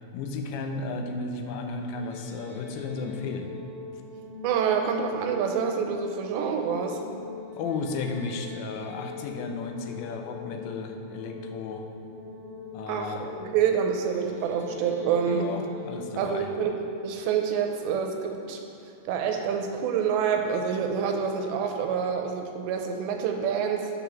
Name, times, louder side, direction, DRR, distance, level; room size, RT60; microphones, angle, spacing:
voice 1, 0.1-3.5 7.5-11.8 12.7-13.3 15.3-16.5, left 4 dB, 80° left, 4 dB, 2.9 m, -34 dB
sound 1, 1.8-18.8, left 5 dB, 50° left, 2.4 m, -42 dB
voice 2, 4.4-7.1 12.9-15.5 16.2-23.9, right 7 dB, 80° right, 3 dB, 2.8 m, -27 dB
9.3 x 5.9 x 5.9 m, 2.6 s
omnidirectional pair, 5.2 m